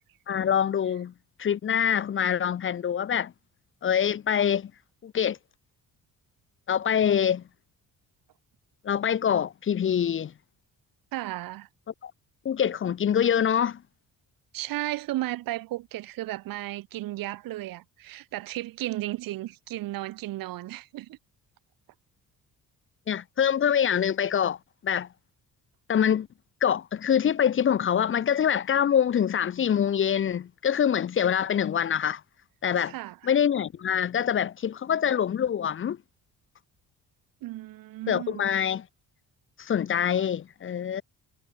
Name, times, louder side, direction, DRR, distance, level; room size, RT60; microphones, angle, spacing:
voice 1, 0.3-1.1 1.4-3.3 3.8-4.7 5.0-5.4 6.7-7.4 8.8-10.3 12.0-12.1 12.4-13.8 23.1-24.6 24.8-25.1 25.9-26.3 26.6-32.2 32.6-32.9 33.2-36.0 38.1-38.9 39.6-41.0, left 8 dB, 35° left, 1.0 m, -25 dB
voice 2, 11.1-11.7 14.5-21.2 32.8-33.2 37.4-38.4, right 16 dB, 65° right, 0.8 m, -34 dB
cardioid pair, 175°, 37 cm